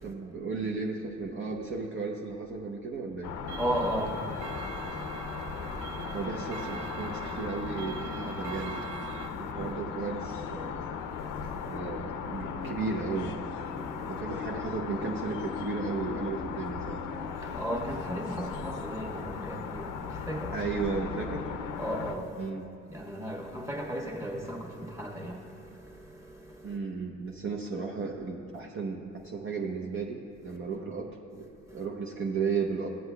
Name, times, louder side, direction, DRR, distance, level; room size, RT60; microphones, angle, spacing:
voice 1, 0.0-3.3 6.1-8.8 9.4-10.8 11.6-13.4 14.1-17.0 20.5-21.5 22.4-22.7 26.6-32.9, right 4 dB, 40° right, -1 dB, 0.8 m, -34 dB
sound 1, 3.2-22.1, left 6 dB, 85° left, 0.6 m, -37 dB
Clock, 3.5-9.3, right 8 dB, 80° right, 0.5 m, -43 dB
voice 2, 3.6-6.2 9.1-9.7 11.0-11.8 13.7-14.2 17.2-20.6 21.8-22.5 22.9-26.8 30.5-30.8 31.6-31.9, equal, 10° right, -1 dB, 1.3 m, -37 dB
15.5 x 7.8 x 2.3 m, 2.5 s
cardioid pair, 90°, 30 cm